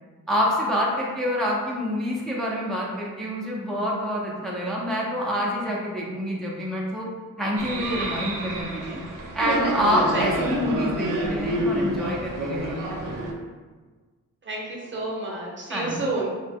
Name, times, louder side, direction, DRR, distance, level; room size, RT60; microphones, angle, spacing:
voice 1, 0.3-7.1 7.4-9.0 9.3-13.2 15.7-16.1, equal, ahead, -4 dB, 0.4 m, -27 dB
sound 1, 7.6-13.3, right 1 dB, 85° right, 0.5 m, -28 dB
voice 2, 14.4-16.3, right 2 dB, 40° right, -4 dB, 0.6 m, -30 dB
2.8 x 2.0 x 3.4 m, 1.4 s
wide cardioid pair, 145°, 31 cm